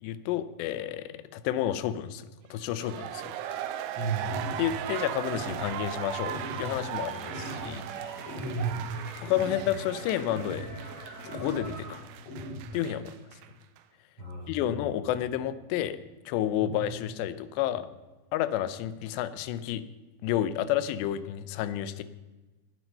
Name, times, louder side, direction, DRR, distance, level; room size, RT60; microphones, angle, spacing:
voice 1, 0.0-3.3 4.6-7.8 9.2-10.7 11.3-12.0 12.7-13.1 14.5-16.0 16.3-17.9 18.3-19.8 20.2-22.0, left 11 dB, 85° left, 13 dB, 2.9 m, -30 dB
sound 1, 2.6-13.5 13.8-13.9, right 11 dB, 90° right, 3.0 m, -38 dB
voice 2, 3.9-4.4 8.4-8.8 14.2-14.7 16.6-16.8, right 4 dB, 50° right, -2 dB, 1.4 m, -33 dB
sound 2, 4.3-4.7 5.3-5.7 6.3-6.7 7.3-7.7 8.3-8.7 9.3-9.7 10.3-10.7 11.3-11.7 12.3-12.7, equal, 55° left, 5.2 m, -40 dB
sound 3, 6.2-12.0, left 1 dB, 10° left, 0.8 m, -48 dB
19.0 x 8.8 x 5.4 m, 1.2 s
omnidirectional pair, 4.9 m